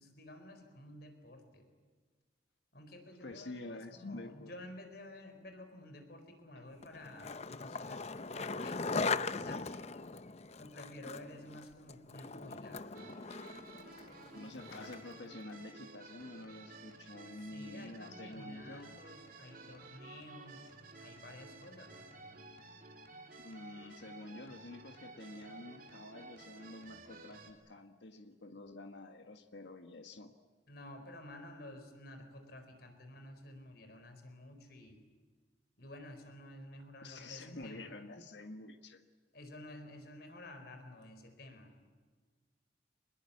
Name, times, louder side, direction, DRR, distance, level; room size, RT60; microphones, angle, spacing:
voice 1, 0.0-1.7 2.7-9.9 10.6-13.1 17.4-20.7 21.0-22.4 30.7-35.0 35.8-37.9 39.3-41.7, left 1 dB, 60° left, 6 dB, 4.5 m, -52 dB
voice 2, 3.2-4.5 6.5-6.6 14.3-19.0 23.4-30.3 37.0-39.0, left 2 dB, 80° left, 6 dB, 1.6 m, -48 dB
Skateboard, 6.8-15.2, left 4 dB, 35° left, 0.7 m, -40 dB
sound 1, 12.9-27.5, right 3 dB, 50° right, 3.1 m, -53 dB
25.5 x 21.5 x 8.5 m, 1.5 s
head